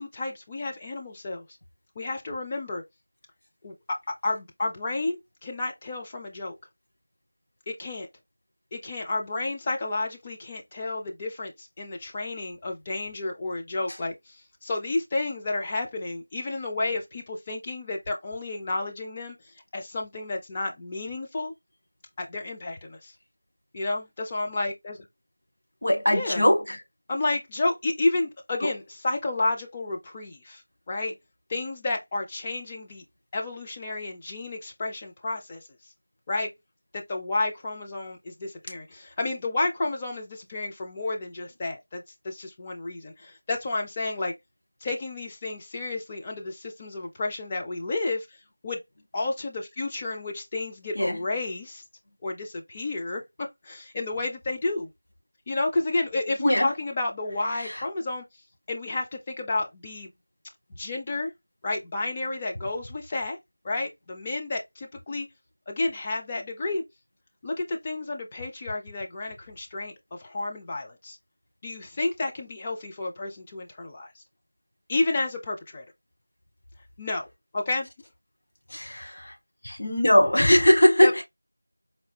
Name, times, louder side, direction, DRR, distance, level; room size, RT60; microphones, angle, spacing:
voice 1, 0.0-1.4 2.0-2.8 3.6-3.7 4.2-6.5 7.7-8.1 8.7-14.4 14.6-19.4 19.7-21.5 22.2-23.1 23.7-25.0 26.1-26.4 27.1-30.6 30.9-31.1 31.5-33.0 33.3-35.6 36.3-36.5 36.9-44.3 44.8-48.3 48.6-48.8 49.1-51.8 52.2-54.9 55.5-58.2 58.7-60.1 60.8-61.3 61.6-63.4 63.6-65.3 65.7-66.8 67.4-71.2 71.6-74.1 74.9-75.8 77.0-77.3 77.5-77.9 81.0-81.1, left 2 dB, 15° left, 0.4 m, -31 dB
voice 2, 25.8-26.8 28.6-28.7 50.9-51.2 56.4-56.7 57.5-57.8 78.7-79.3 79.6-81.2, equal, 50° left, 1.1 m, -21 dB
4.2 x 2.2 x 2.8 m
figure-of-eight pair, 175°, 0 cm